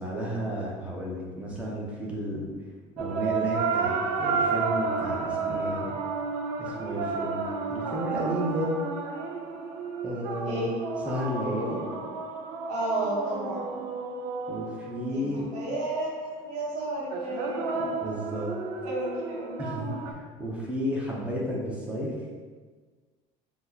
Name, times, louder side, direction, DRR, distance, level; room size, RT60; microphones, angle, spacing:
voice 1, 0.0-2.4 3.0-6.0 6.6-7.4 7.7-8.7 10.0-10.7 11.1-11.8 14.5-15.5 17.7-18.5 19.6-22.1, equal, 10° right, -4 dB, 0.7 m, -32 dB
sound 1, 3.0-15.5 17.1-20.1, right 4 dB, 90° right, 0.4 m, -31 dB
voice 2, 12.7-13.8 15.0-17.9 18.8-19.5, right 1 dB, 60° right, -5 dB, 1.0 m, -32 dB
2.9 x 2.2 x 3.8 m, 1.5 s
cardioid pair, 130°, 14 cm